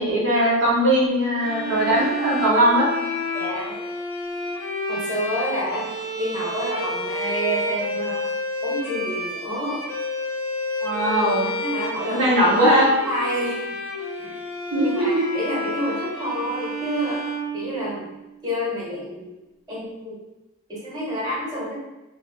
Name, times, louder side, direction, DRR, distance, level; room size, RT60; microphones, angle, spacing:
voice 1, 0.0-2.9 10.8-11.5 12.1-12.9 14.7-15.3, equal, 65° right, -7 dB, 1.0 m, -19 dB
sound 1, 1.4-18.2, equal, 85° left, 0.9 m, -30 dB
voice 2, 3.3-3.8 4.9-8.2 8.6-9.8 11.4-12.5 13.0-13.7 14.2-14.4 14.8-17.2 17.5-18.1 18.4-19.3 19.7-20.2 20.7-21.7, equal, 20° right, -7 dB, 1.2 m, -29 dB
2.7 x 2.6 x 3.3 m, 1.0 s
head